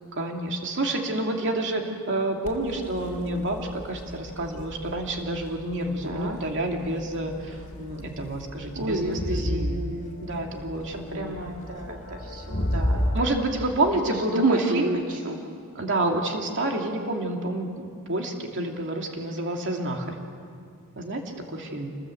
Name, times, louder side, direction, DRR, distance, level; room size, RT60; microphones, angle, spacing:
voice 1, 0.1-9.8 10.2-11.4 13.1-15.0 15.7-20.2 21.0-21.2 21.5-21.9, right 2 dB, 55° right, 2 dB, 2.7 m, -29 dB
Crowd, 2.4-13.2, left 1 dB, 35° left, 2.7 m, -33 dB
voice 2, 6.0-6.4 8.8-10.3 11.1-13.3 13.9-14.8 15.1-15.4, right 2 dB, 75° right, 0 dB, 2.0 m, -30 dB
27.5 x 20.5 x 7.9 m, 2.3 s
head